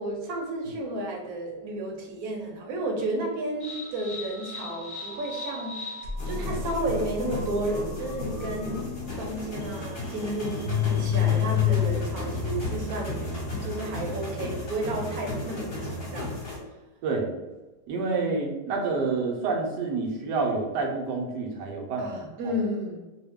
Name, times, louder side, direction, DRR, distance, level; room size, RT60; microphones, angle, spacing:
voice 1, 0.0-5.8 6.2-8.8 9.2-13.2 13.6-16.3 22.0-23.0, right 1 dB, 65° right, 0 dB, 1.1 m, -32 dB
sound 1, 3.6-14.2, left 8 dB, 55° left, 0.7 m, -31 dB
sound 2, 6.2-16.6, left 1 dB, 35° left, 1.1 m, -35 dB
voice 2, 17.9-22.2 22.4-22.5, right 4 dB, 85° right, 0 dB, 1.3 m, -28 dB
3.0 x 2.2 x 3.4 m, 1.1 s
omnidirectional pair, 1.8 m